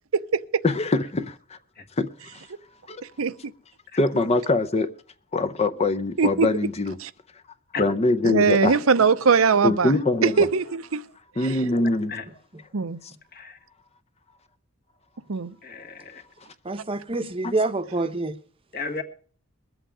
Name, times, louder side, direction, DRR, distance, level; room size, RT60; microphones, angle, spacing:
voice 1, 0.6-1.6 2.0-2.4 2.9-3.0 4.0-4.9 5.3-7.0 7.8-8.8 9.6-10.5 11.4-12.1 17.4-17.5, left 2 dB, 30° left, 0.6 m, -23 dB
voice 2, 8.2-9.9 10.2-11.0 11.4-11.6 12.7-13.0 15.3-15.5, right 5 dB, 85° right, 0.7 m, -21 dB
voice 3, 12.5-12.9 16.6-18.4, right 2 dB, 25° right, 0.8 m, -27 dB
voice 4, 15.6-16.2 18.7-19.0, left 4 dB, 50° left, 1.7 m, -33 dB
21.5 x 8.1 x 4.9 m
head